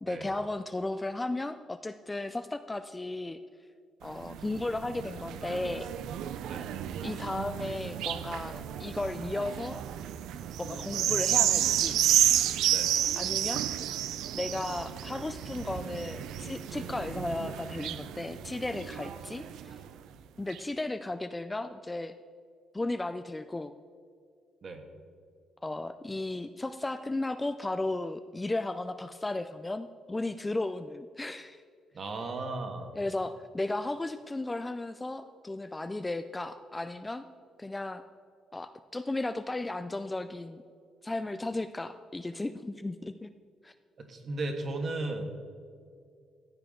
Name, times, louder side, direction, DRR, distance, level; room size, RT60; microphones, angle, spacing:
voice 1, 0.0-3.4 4.0-5.9 7.0-9.8 10.6-12.0 13.2-13.6 14.3-19.8 20.4-22.1 22.7-23.7 25.6-31.6 32.9-37.2 37.6-38.0 38.5-40.6 41.0-43.3 43.6-43.7, left 2 dB, 10° left, 9 dB, 0.3 m, -35 dB
sound 1, 4.1-19.9 20.5-20.6, right 11 dB, 85° right, 0.5 m, -31 dB
voice 2, 31.9-32.9 44.0-45.3, right 2 dB, 40° right, 4 dB, 1.4 m, -35 dB
15.0 x 8.8 x 3.7 m, 2.2 s
cardioid pair, 150°, 0 cm